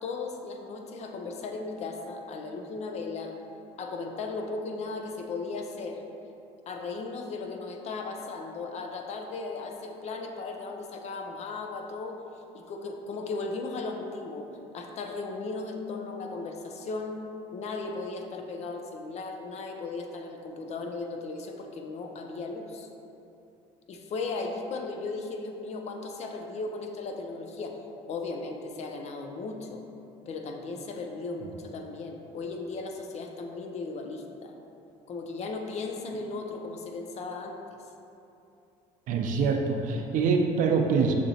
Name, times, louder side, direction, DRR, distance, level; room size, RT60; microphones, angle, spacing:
voice 1, 0.0-3.3 3.8-6.0 6.7-12.1 12.5-14.5 14.7-17.2 17.5-22.9 23.9-27.8 28.1-29.8 30.3-34.5 35.1-37.6, left 3 dB, 50° left, 3 dB, 0.5 m, -36 dB
voice 2, 39.1-41.1, right 5 dB, 65° right, 3 dB, 0.5 m, -25 dB
6.3 x 2.8 x 2.7 m, 2.8 s
cardioid pair, 95°, 15 cm